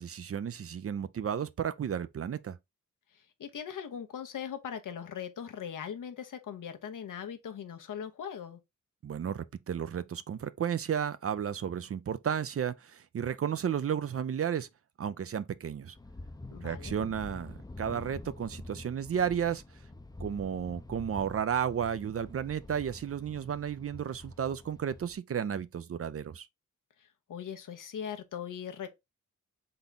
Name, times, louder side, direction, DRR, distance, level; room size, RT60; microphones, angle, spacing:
voice 1, 0.0-2.6 9.0-14.7 15.0-16.0 16.6-19.6 20.2-26.5, right 8 dB, 45° right, 0.5 m, -33 dB
voice 2, 3.1-8.6 16.5-16.9 27.0-28.9, left 8 dB, 80° left, 0.9 m, -40 dB
sound 1, 15.9-25.2, left 2 dB, 15° left, 0.5 m, -46 dB
4.0 x 3.5 x 3.8 m
cardioid pair, 75°, 31 cm